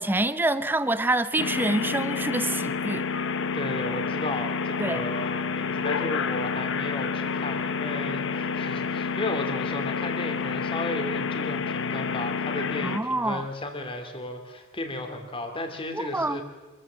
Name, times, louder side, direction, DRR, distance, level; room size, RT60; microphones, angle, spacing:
voice 1, 0.0-3.1 4.8-5.0 12.8-13.5 15.9-16.4, right 2 dB, 10° right, 0.7 m, -26 dB
sound 1, 1.4-13.0, left 5 dB, 60° left, 0.9 m, -29 dB
voice 2, 3.5-16.4, left 1 dB, 25° left, 2.6 m, -34 dB
26.5 x 14.5 x 7.5 m
head